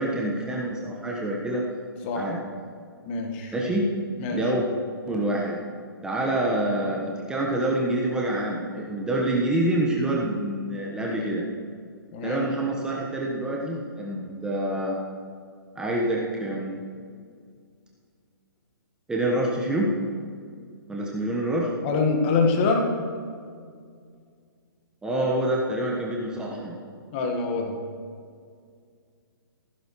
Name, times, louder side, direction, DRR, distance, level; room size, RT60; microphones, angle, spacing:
voice 1, 0.0-1.6 2.1-2.4 3.5-3.8 4.3-4.6 5.1-5.6 6.0-11.4 12.2-15.0 15.7-16.7 19.1-19.9 20.9-21.7 25.0-26.8, right 1 dB, 5° right, -3 dB, 1.3 m, -26 dB
voice 2, 3.0-3.5 4.2-4.4 12.1-12.4 21.8-22.9 27.1-27.7, left 4 dB, 30° left, 2 dB, 1.6 m, -24 dB
16.0 x 14.5 x 3.2 m, 2.1 s
figure-of-eight pair, 125°, 12 cm